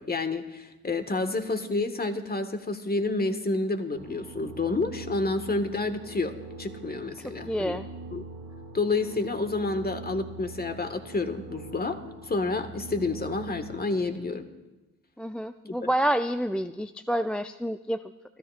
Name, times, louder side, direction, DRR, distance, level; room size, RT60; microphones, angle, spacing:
voice 1, 0.0-7.8 8.1-8.2 8.7-14.5 15.7-15.8, left 3 dB, 25° left, 7 dB, 1.6 m, -29 dB
sound 1, 4.0-14.1, right 3 dB, 75° right, 2.9 m, -43 dB
voice 2, 7.5-7.9 15.2-18.0, equal, 5° left, 10 dB, 0.4 m, -28 dB
28.5 x 13.5 x 2.5 m, 1.1 s
hypercardioid pair, 55°, 38 cm